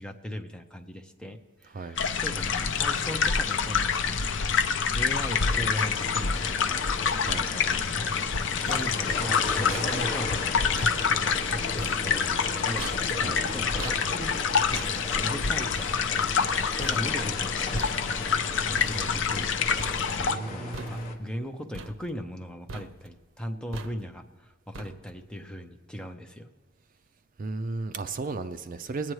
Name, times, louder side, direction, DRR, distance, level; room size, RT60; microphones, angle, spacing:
voice 1, 0.0-4.2 4.9-6.9 7.3-8.1 8.5-10.5 11.1-12.9 13.4-16.0 16.4-19.6 20.3-26.5, equal, 5° left, 4 dB, 0.7 m, -39 dB
sound 1, 2.0-20.4, left 6 dB, 65° left, 0.6 m, -27 dB
sound 2, 5.4-21.1, left 2 dB, 45° left, 1.1 m, -38 dB
sound 3, 8.3-19.5 19.8-20.4 20.7-21.4 21.7-22.4 22.7-23.2 23.7-24.3 24.7-25.3, right 3 dB, 80° right, 0.7 m, -44 dB
voice 2, 20.2-21.1 27.4-29.1, right 3 dB, 40° right, 10 dB, 0.4 m, -34 dB
20.5 x 9.0 x 3.2 m, 1.4 s
head